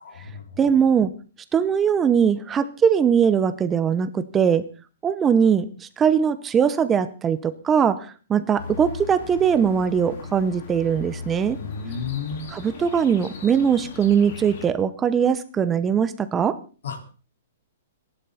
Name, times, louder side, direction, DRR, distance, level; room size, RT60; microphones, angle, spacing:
voice 1, 0.0-0.4 11.5-12.5 16.8-17.0, left 6 dB, 70° left, 5 dB, 4.3 m, -32 dB
voice 2, 0.6-1.1 1.5-4.6 5.0-11.6 12.5-16.6, right 7 dB, 10° right, 13 dB, 0.7 m, -21 dB
sound 1, 8.6-14.7, left 4 dB, 45° left, 4.2 m, -38 dB
26.5 x 11.5 x 4.2 m, 0.37 s
hypercardioid pair, 170°, 0 cm